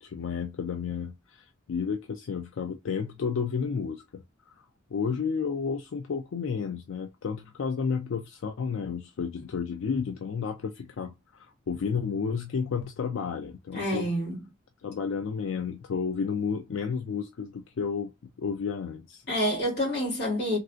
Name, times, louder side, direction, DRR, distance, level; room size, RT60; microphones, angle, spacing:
voice 1, 0.0-4.2 4.5-4.6 4.9-14.1 14.8-18.1 18.4-19.2, left 6 dB, 85° left, 0.4 m, -31 dB
voice 2, 13.7-14.4 19.3-20.6, equal, 55° left, 2.0 m, -28 dB
3.2 x 2.6 x 2.4 m
head